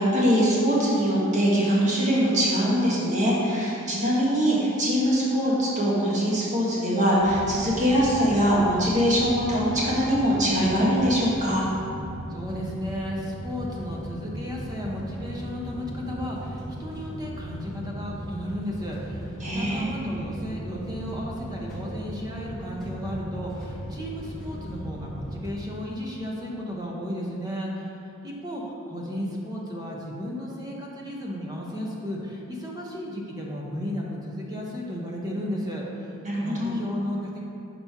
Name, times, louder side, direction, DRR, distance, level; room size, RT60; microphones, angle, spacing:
voice 1, 0.0-11.6 19.4-19.9 36.2-36.8, equal, 35° right, -6 dB, 1.3 m, -22 dB
sound 1, 7.2-25.6, equal, ahead, 1.1 m, -37 dB
voice 2, 12.3-27.9 28.2-36.1 36.4-37.4, equal, 15° right, -3 dB, 0.7 m, -34 dB
5.7 x 4.2 x 4.5 m, 2.7 s
head